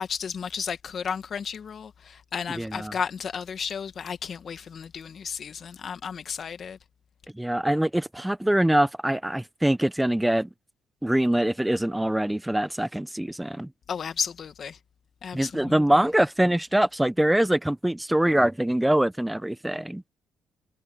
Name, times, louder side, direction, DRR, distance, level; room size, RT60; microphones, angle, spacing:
voice 1, 0.0-6.8 13.9-14.8 15.2-16.0, left 7 dB, 50° left, 1.9 m, -33 dB
voice 2, 2.5-2.9 7.3-10.5 11.0-13.7 15.3-20.0, right 1 dB, 5° right, 0.8 m, -24 dB
cardioid pair, 90°, 0 cm